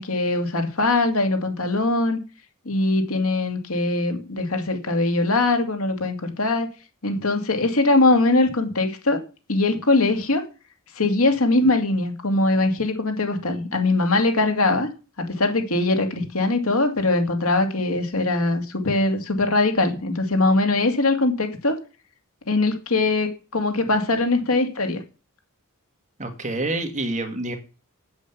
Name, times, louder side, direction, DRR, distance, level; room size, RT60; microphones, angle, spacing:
voice 1, 0.0-2.2 2.7-6.7 7.0-9.2 9.5-10.4 11.0-14.9 15.2-21.8 22.5-25.0, left 2 dB, 75° left, 5 dB, 2.4 m, -21 dB
voice 2, 26.2-27.6, right 2 dB, 35° right, 6 dB, 1.9 m, -27 dB
8.2 x 7.6 x 8.3 m, 0.33 s
head